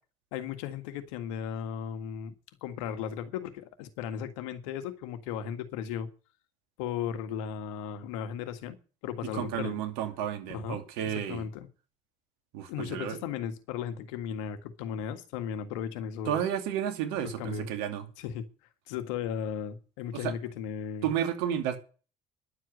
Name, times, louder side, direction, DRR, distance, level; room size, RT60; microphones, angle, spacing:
voice 1, 0.3-2.3 2.6-6.1 6.8-8.8 9.0-9.8 10.5-11.7 12.7-16.5 17.2-17.7 18.2-18.4 18.9-21.1, left 8 dB, 85° left, 1.8 m, -36 dB
voice 2, 9.3-11.5 12.5-13.2 16.3-18.1 20.1-20.4 21.0-21.8, right 10 dB, 80° right, 2.8 m, -32 dB
11.5 x 7.7 x 9.4 m
hypercardioid pair, 65°, 16 cm